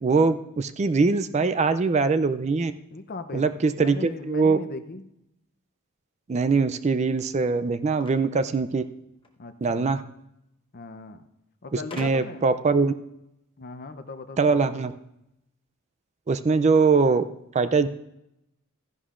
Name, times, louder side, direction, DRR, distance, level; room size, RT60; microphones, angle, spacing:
voice 1, 0.0-2.7 3.3-4.6 6.3-8.8 9.6-10.0 11.7-12.9 14.4-15.0 16.3-17.3 17.5-17.9, right 4 dB, 30° right, 11 dB, 0.4 m, -22 dB
voice 2, 2.9-5.1 9.4-10.0 10.7-11.2 11.6-12.5 13.6-14.8, left 3 dB, 45° left, 9 dB, 0.6 m, -39 dB
sound 1, 8.0-9.4 10.5-10.6 10.8-10.9 11.9-12.5, left 2 dB, 25° left, 1.1 m, -45 dB
14.5 x 11.0 x 2.5 m, 0.84 s
head